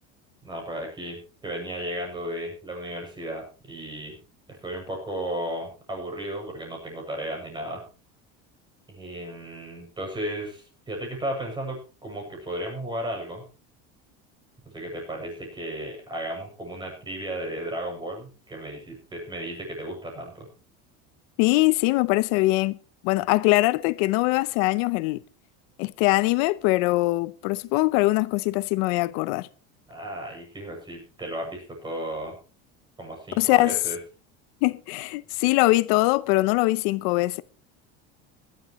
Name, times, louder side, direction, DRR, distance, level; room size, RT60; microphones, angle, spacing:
voice 1, 0.4-4.1 4.5-7.8 8.9-13.4 14.7-20.5 29.9-32.4 33.0-34.0, right 1 dB, 15° right, 7.2 m, -34 dB
voice 2, 21.4-22.8 23.0-25.2 25.8-29.5 33.4-33.8 34.6-37.4, left 20 dB, 80° left, 0.7 m, -22 dB
20.5 x 12.0 x 3.1 m
cardioid pair, 155°, 30 cm